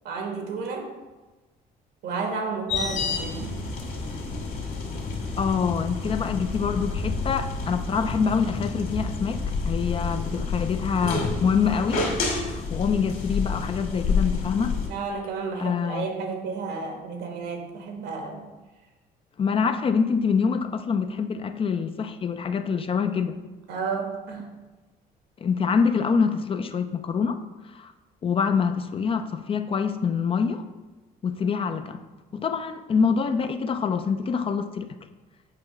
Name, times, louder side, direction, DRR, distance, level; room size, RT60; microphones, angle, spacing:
voice 1, 0.0-0.9 2.0-3.5 14.9-18.5 23.7-24.5, right 4 dB, 80° right, 2 dB, 1.5 m, -32 dB
sound 1, 2.7-14.9, left 4 dB, 55° left, 2.1 m, -29 dB
voice 2, 5.4-14.7 15.6-16.2 19.4-23.4 25.4-27.4 27.7-27.9 28.2-30.6 31.2-32.0 32.3-34.9, left 6 dB, 35° left, 9 dB, 0.5 m, -25 dB
7.7 x 2.9 x 5.9 m, 1.2 s
cardioid pair, 110°, 17 cm